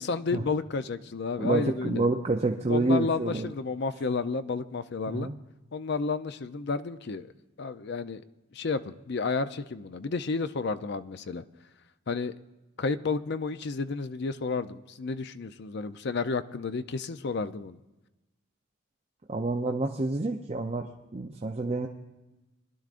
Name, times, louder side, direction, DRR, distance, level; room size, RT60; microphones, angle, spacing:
voice 1, 0.0-2.1 2.7-5.3 5.7-7.3 7.6-8.2 8.5-11.4 12.1-12.3 12.8-17.8, left 4 dB, 55° left, 12 dB, 0.5 m, -31 dB
voice 2, 1.4-3.5 5.1-5.4 19.3-21.9, right 2 dB, 30° right, 2 dB, 0.6 m, -28 dB
22.0 x 11.5 x 2.5 m, 1.1 s
head